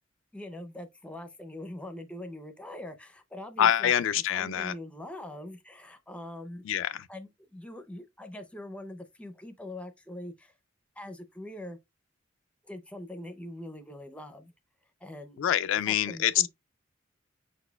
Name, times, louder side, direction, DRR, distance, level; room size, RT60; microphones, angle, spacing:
voice 1, 0.3-3.9 4.3-6.7 7.1-10.5 11.0-11.8 12.6-14.5 15.0-15.4 15.9-16.5, left 1 dB, 5° left, 0.5 m, -42 dB
voice 2, 3.6-4.7 6.6-7.1 15.4-16.5, left 10 dB, 70° left, 0.3 m, -25 dB
5.0 x 4.1 x 2.2 m
head